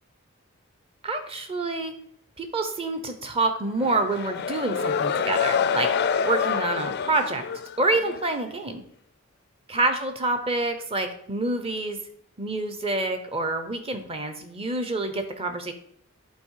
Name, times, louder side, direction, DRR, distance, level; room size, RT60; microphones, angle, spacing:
voice 1, 1.0-1.9 2.4-5.9 6.2-7.4 7.8-8.8 9.7-12.0 12.4-15.7, right 2 dB, 30° right, 7 dB, 0.8 m, -27 dB
sound 1, 3.8-8.3, left 7 dB, 50° left, 0.4 m, -27 dB
8.5 x 4.0 x 4.7 m, 0.66 s
head